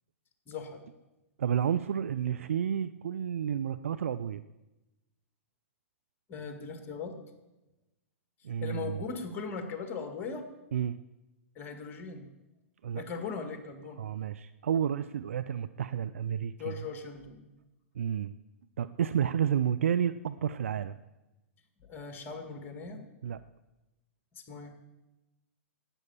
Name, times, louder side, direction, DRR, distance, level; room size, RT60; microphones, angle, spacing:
voice 1, 0.5-0.8 6.3-7.2 8.6-10.5 11.6-12.3 13.0-14.0 16.6-17.5 21.8-23.1 24.3-24.7, left 5 dB, 30° left, 6 dB, 2.1 m, -39 dB
voice 2, 1.4-4.4 8.4-9.0 10.7-11.0 12.8-13.0 14.0-16.7 18.0-18.3 18.8-21.0 23.2-23.4, right 9 dB, 70° right, 12 dB, 0.5 m, -31 dB
12.5 x 9.2 x 7.2 m, 1.0 s
hypercardioid pair, 115°, 7 cm